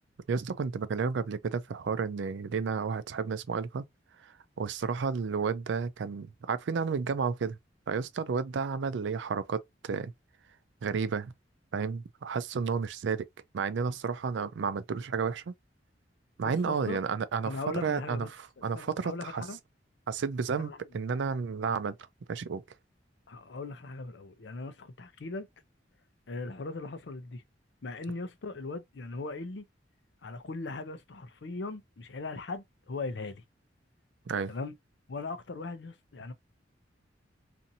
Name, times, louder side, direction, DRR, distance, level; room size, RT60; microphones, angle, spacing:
voice 1, 0.3-3.8 4.6-7.6 7.9-10.1 10.8-11.3 11.7-13.2 13.5-15.5 16.4-17.5 17.8-18.3 18.6-19.4 20.1-22.0 22.3-22.6 34.3-34.5, right 5 dB, 75° right, 0.4 m, -31 dB
voice 2, 16.4-17.0 17.4-18.3 18.6-19.6 20.5-20.8 23.3-25.5 26.3-27.4 27.8-29.7 30.2-33.4 34.5-34.7 35.1-36.3, left 3 dB, 70° left, 0.6 m, -39 dB
2.6 x 2.6 x 2.6 m
head